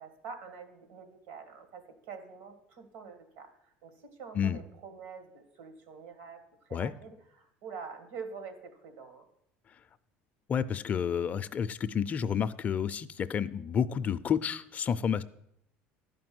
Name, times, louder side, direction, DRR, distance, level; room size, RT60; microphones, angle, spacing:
voice 1, 0.0-3.9 4.2-9.3, right 5 dB, 80° right, 8 dB, 1.8 m, -46 dB
voice 2, 10.5-15.2, left 7 dB, 30° left, 13 dB, 0.4 m, -30 dB
11.0 x 5.2 x 7.7 m, 0.78 s
cardioid pair, 130°, 5 cm